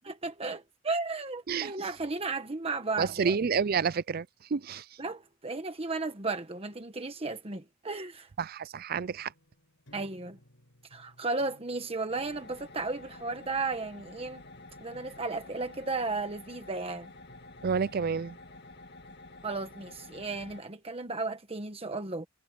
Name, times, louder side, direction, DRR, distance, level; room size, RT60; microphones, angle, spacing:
voice 1, 0.1-3.4 5.0-8.3 9.9-10.4 10.9-14.4 14.8-17.1 19.4-22.3, right 3 dB, 30° right, 1.3 m, -34 dB
voice 2, 3.0-4.9 8.4-9.3 17.6-18.4, right 6 dB, 50° right, 0.5 m, -29 dB
sound 1, 9.0-20.6, left 1 dB, 85° left, 5.3 m, -61 dB
sound 2, 12.1-20.6, left 2 dB, 60° left, 2.0 m, -50 dB
head